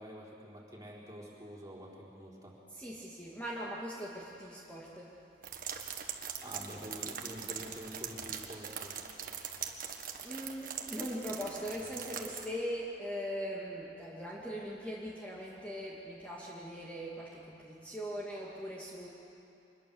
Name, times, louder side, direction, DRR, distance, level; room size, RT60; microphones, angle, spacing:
voice 1, 0.0-2.5 6.4-9.0, equal, 20° right, -4 dB, 4.2 m, -47 dB
voice 2, 2.8-5.1 10.2-19.1, equal, 10° left, -5 dB, 2.1 m, -40 dB
sound 1, 5.4-12.5, right 7 dB, 50° right, 1.6 m, -42 dB
24.0 x 21.0 x 7.1 m, 2.9 s
head